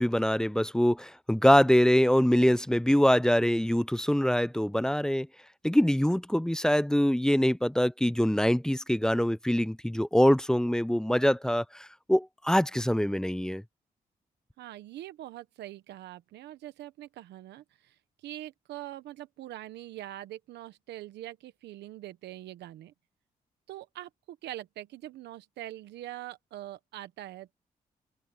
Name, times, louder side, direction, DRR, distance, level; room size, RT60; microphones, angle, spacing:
voice 1, 0.0-5.3 5.6-13.6, equal, 5° left, 0.7 m, -24 dB
voice 2, 14.6-22.9 23.7-27.5, right 14 dB, 85° right, 1.1 m, -43 dB
supercardioid pair, 50°, 17 cm